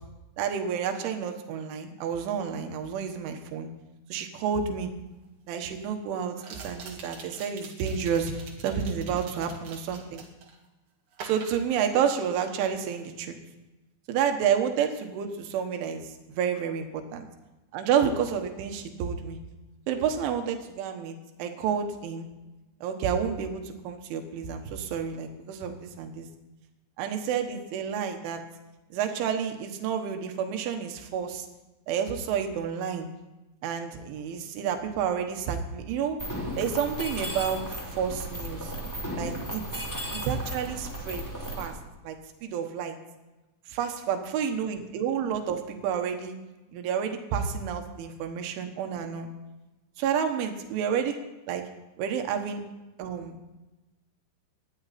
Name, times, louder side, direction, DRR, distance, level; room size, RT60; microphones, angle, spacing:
voice 1, 0.4-3.7 4.1-4.9 5.5-10.2 11.2-13.4 14.1-17.3 17.7-19.4 19.9-22.3 22.8-26.3 27.0-28.4 28.9-31.5 31.9-33.1 33.6-36.2 36.6-37.6 37.9-38.7 39.2-39.6 40.1-41.2 41.6-41.7 42.0-42.2 42.4-43.0 43.7-46.4 46.7-49.3 50.0-51.1 51.5-51.6 52.0-52.6 53.0-53.4, right 7 dB, 85° right, 5 dB, 3.8 m, -30 dB
sound 1, 4.7-4.8 6.4-10.6 11.1-12.5 12.7-13.1, right 5 dB, 50° right, 2.9 m, -45 dB
Mechanisms, 36.2-41.7, equal, 5° left, 2.0 m, -35 dB
20.0 x 13.0 x 4.2 m, 1.1 s
omnidirectional pair, 5.4 m